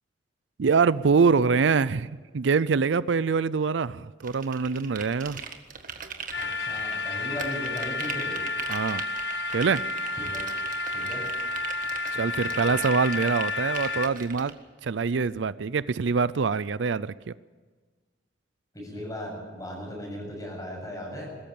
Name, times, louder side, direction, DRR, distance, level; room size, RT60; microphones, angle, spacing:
voice 1, 0.6-5.4 8.7-9.0 9.5-9.8 12.1-14.5 14.8-17.3, right 5 dB, 75° right, 18 dB, 0.5 m, -24 dB
sound 1, 4.2-7.0 7.4-14.5, right 6 dB, 45° right, 1.7 m, -40 dB
sound 2, 6.3-14.1, left 3 dB, 70° left, 1.2 m, -31 dB
voice 2, 6.4-8.4 10.2-10.4 10.9-11.2 12.4-12.8 18.7-21.4, equal, 20° left, 0 dB, 7.6 m, -37 dB
21.5 x 14.0 x 8.7 m, 1.4 s
head